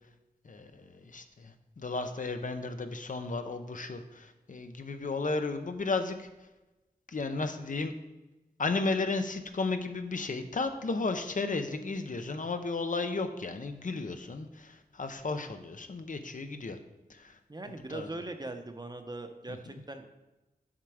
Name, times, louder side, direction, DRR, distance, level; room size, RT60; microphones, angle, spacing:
voice 1, 0.4-6.3 7.1-7.9 8.6-16.8 17.1-17.4 17.7-18.1 19.5-19.8, left 3 dB, 55° left, 8 dB, 0.7 m, -34 dB
voice 2, 17.5-20.1, right 2 dB, 25° right, 7 dB, 0.8 m, -40 dB
7.5 x 5.8 x 4.9 m, 1.1 s
wide cardioid pair, 70°, 16 cm